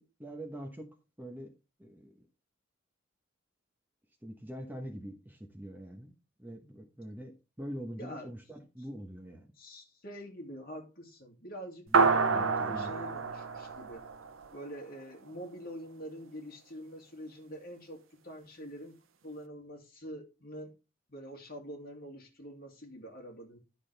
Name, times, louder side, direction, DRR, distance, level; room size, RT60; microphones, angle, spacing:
voice 1, 0.0-1.5 1.8-2.1 4.2-6.1 6.4-9.5 11.9-12.9, equal, 10° right, 1.0 m, -44 dB
voice 2, 8.0-8.4 9.5-14.0 14.5-19.0 19.2-20.7 21.1-23.6, equal, 45° left, 2.3 m, -45 dB
sound 1, 11.9-14.6, right 4 dB, 85° right, 0.9 m, -28 dB
11.0 x 6.1 x 3.3 m
head